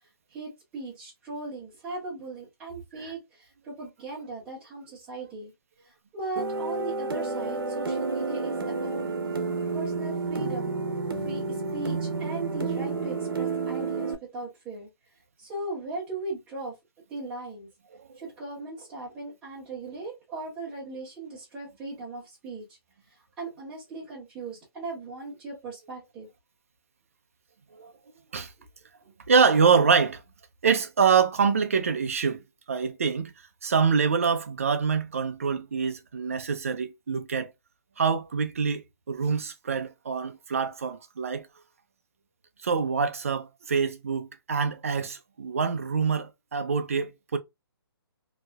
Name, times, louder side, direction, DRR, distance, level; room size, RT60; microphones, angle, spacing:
voice 1, 0.3-5.5 6.1-9.1 9.7-10.8 11.2-11.4 11.7-14.9 15.4-16.7 17.1-17.7 18.2-22.6 23.4-26.3, right 2 dB, 5° right, 0.9 m, -38 dB
sound 1, 6.4-14.2, right 4 dB, 60° right, 1.0 m, -30 dB
voice 2, 29.3-30.2 30.6-32.4 32.7-33.3 33.6-37.5 38.0-38.8 39.1-41.5 42.6-47.4, right 5 dB, 35° right, 0.4 m, -25 dB
3.0 x 2.7 x 2.2 m
hypercardioid pair, 175°, 13 cm